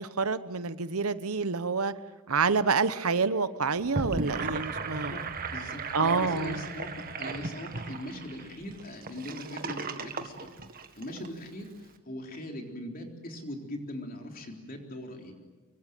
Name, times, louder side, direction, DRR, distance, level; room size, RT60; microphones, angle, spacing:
voice 1, 0.0-1.9 2.3-5.2 5.9-6.6, right 4 dB, 85° right, 14 dB, 1.0 m, -28 dB
Gurgling / Sink (filling or washing), 3.8-11.3, right 4 dB, 40° right, 1.8 m, -36 dB
voice 2, 4.9-5.2 5.5-10.5 10.9-15.3, left 1 dB, 40° left, 3 dB, 3.7 m, -40 dB
25.0 x 23.0 x 9.2 m, 1.3 s
head